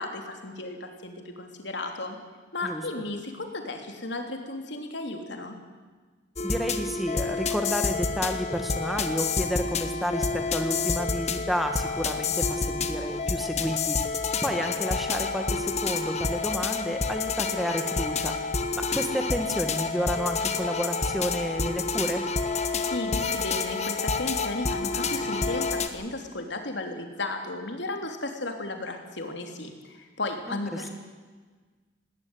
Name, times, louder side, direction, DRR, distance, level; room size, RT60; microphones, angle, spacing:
voice 1, 0.0-2.2 2.5-5.6 22.7-30.9, left 2 dB, 65° left, 4 dB, 3.1 m, -34 dB
sound 1, 6.4-25.9, left 4 dB, 35° left, 1.4 m, -29 dB
voice 2, 6.4-14.0 14.4-18.3 18.8-22.3 30.5-30.9, equal, ahead, 5 dB, 1.6 m, -31 dB
19.5 x 17.5 x 9.7 m, 1.4 s
head